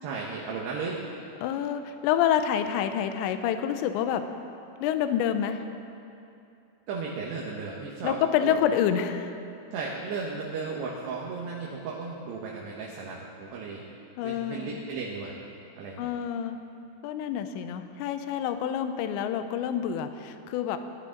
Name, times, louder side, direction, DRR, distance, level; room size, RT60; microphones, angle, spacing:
voice 1, 0.0-1.0 6.9-8.2 8.4-8.6 9.7-13.9 14.2-15.4 15.8-16.1, right 4 dB, 70° right, -3 dB, 3.0 m, -35 dB
voice 2, 1.4-4.2 4.8-5.6 8.0-9.3 14.2-14.8 16.0-16.6 17.0-20.8, left 9 dB, 80° left, 9 dB, 2.8 m, -27 dB
22.0 x 11.5 x 3.9 m, 2.7 s
omnidirectional pair, 5.6 m